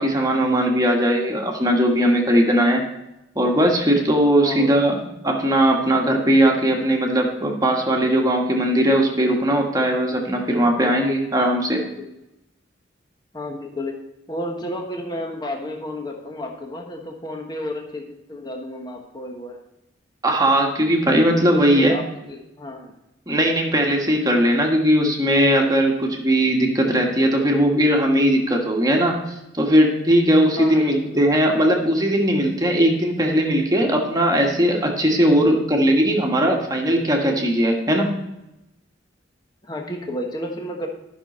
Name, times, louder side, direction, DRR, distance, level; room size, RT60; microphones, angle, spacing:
voice 1, 0.0-2.8 3.3-11.8 20.2-22.0 23.3-29.2 29.5-38.1, equal, 20° right, 1 dB, 1.5 m, -19 dB
voice 2, 4.4-4.7 12.0-12.1 13.3-14.0 14.3-19.6 21.3-22.9 30.6-31.0 35.3-35.6 39.6-40.9, left 1 dB, 25° left, 2 dB, 1.2 m, -31 dB
12.0 x 6.2 x 4.3 m, 0.91 s
head